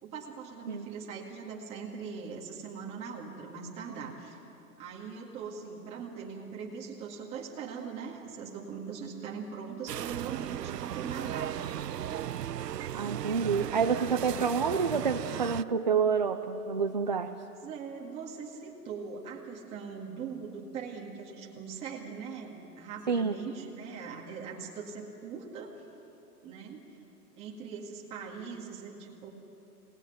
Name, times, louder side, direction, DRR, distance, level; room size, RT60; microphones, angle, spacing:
voice 1, 0.0-4.4 4.8-11.7 17.6-25.8 26.4-26.8 27.4-29.3, right 6 dB, 15° right, -1 dB, 1.9 m, -41 dB
sound 1, 9.9-15.6, right 11 dB, 85° right, 0.8 m, -36 dB
voice 2, 12.9-17.3 23.1-23.4, right 6 dB, 30° right, 5 dB, 0.5 m, -28 dB
26.5 x 19.5 x 9.3 m, 3.0 s
hypercardioid pair, 170°, 47 cm